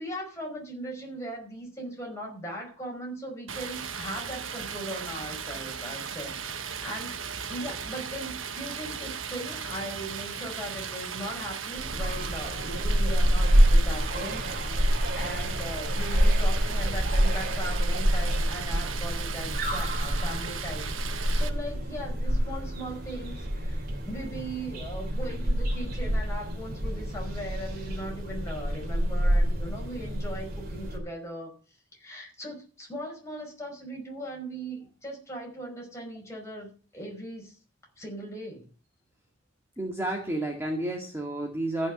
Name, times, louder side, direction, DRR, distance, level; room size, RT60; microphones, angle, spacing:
voice 1, 0.0-7.2 7.5-31.5 31.9-37.6 38.0-38.7, right 1 dB, 15° left, -1 dB, 5.4 m, -39 dB
Stream, 3.5-21.5, right 7 dB, 85° right, 1.2 m, -37 dB
sound 1, 11.8-31.0, equal, 50° right, 3.1 m, -27 dB
voice 2, 39.8-41.9, right 1 dB, 10° right, 0 dB, 2.1 m, -31 dB
14.5 x 6.4 x 6.6 m, 0.37 s
head